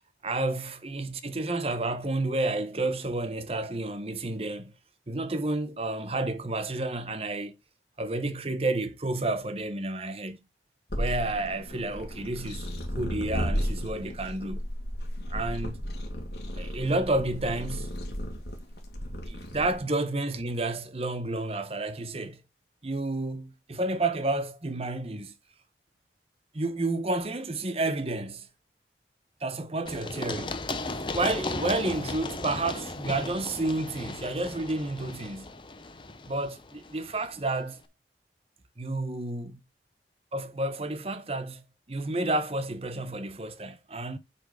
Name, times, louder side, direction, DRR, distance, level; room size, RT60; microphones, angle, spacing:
voice 1, 0.2-4.7 5.1-7.5 8.0-10.4 11.0-14.7 15.3-15.8 16.6-17.9 19.3-22.4 22.8-25.3 26.5-28.5 29.4-30.6 31.1-35.5 36.3-37.8 38.8-39.6 40.3-44.2, right 2 dB, 35° right, 0.9 m, -30 dB
sound 1, 10.9-19.8, equal, 60° left, 2.2 m, -34 dB
Run, 29.9-37.5, left 2 dB, 25° left, 0.7 m, -36 dB
8.2 x 4.4 x 5.0 m
head